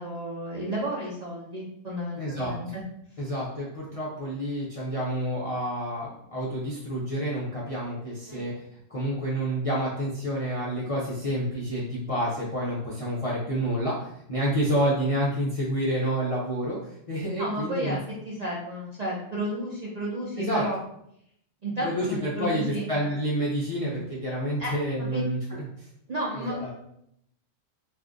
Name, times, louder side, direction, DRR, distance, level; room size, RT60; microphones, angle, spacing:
voice 1, 0.0-2.8 8.3-8.4 17.4-18.0 18.2-20.8 21.6-22.9 24.6-25.2 26.1-26.7, right 1 dB, 75° right, -4 dB, 0.3 m, -32 dB
voice 2, 2.2-2.5 3.2-8.5 8.9-16.8 17.1-18.0 20.4-20.6 21.8-25.9 26.5-26.7, equal, 45° left, -7 dB, 0.4 m, -29 dB
2.5 x 2.4 x 3.7 m, 0.75 s
omnidirectional pair, 1.4 m